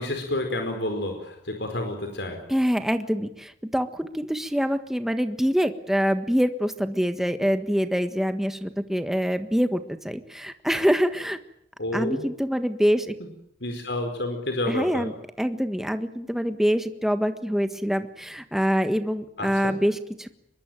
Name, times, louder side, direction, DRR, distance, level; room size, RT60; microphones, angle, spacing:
voice 1, 0.0-2.4 11.8-12.2 13.6-15.1 19.4-19.7, left 1 dB, 80° left, 4 dB, 4.7 m, -29 dB
voice 2, 2.5-11.4 11.9-13.1 14.7-20.4, equal, ahead, 9 dB, 1.5 m, -25 dB
24.5 x 22.5 x 9.0 m, 0.75 s
head